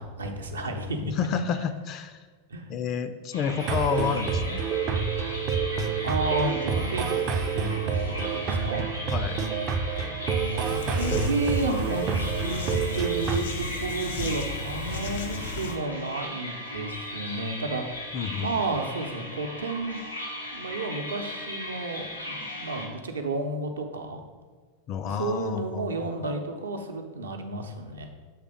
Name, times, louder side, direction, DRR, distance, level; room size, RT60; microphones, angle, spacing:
voice 1, 0.0-1.1 2.5-2.7 6.0-7.2 7.5-8.9 10.6-12.6 12.9-17.8 18.4-20.0 20.5-24.2 25.0-28.1, right 2 dB, 70° right, 4 dB, 0.7 m, -32 dB
voice 2, 1.0-2.2 2.7-4.6 9.1-9.5 18.1-18.8 24.9-26.3, left 7 dB, 35° left, 9 dB, 0.4 m, -30 dB
sound 1, 3.3-22.9, left 1 dB, 90° left, 1.9 m, -37 dB
sound 2, 3.6-13.4, right 6 dB, 35° right, 0.4 m, -28 dB
sound 3, 10.6-15.8, left 3 dB, 60° left, 0.8 m, -34 dB
7.3 x 3.4 x 5.2 m, 1.4 s
figure-of-eight pair, 90°, 0 cm